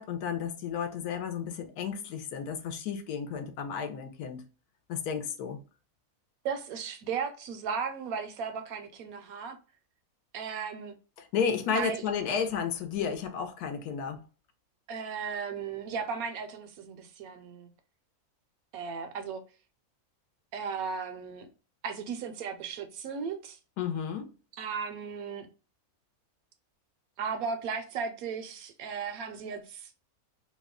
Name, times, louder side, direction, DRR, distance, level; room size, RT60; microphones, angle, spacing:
voice 1, 0.0-4.4 4.9-5.6 11.2-14.2 23.8-24.3, left 7 dB, 85° left, 1.2 m, -32 dB
voice 2, 6.4-9.6 10.3-10.9 11.7-12.0 14.9-17.7 18.7-19.4 20.5-21.5 21.8-23.6 24.6-25.5 27.2-29.9, right 6 dB, 75° right, 1.0 m, -36 dB
3.0 x 2.1 x 3.5 m
omnidirectional pair, 1.6 m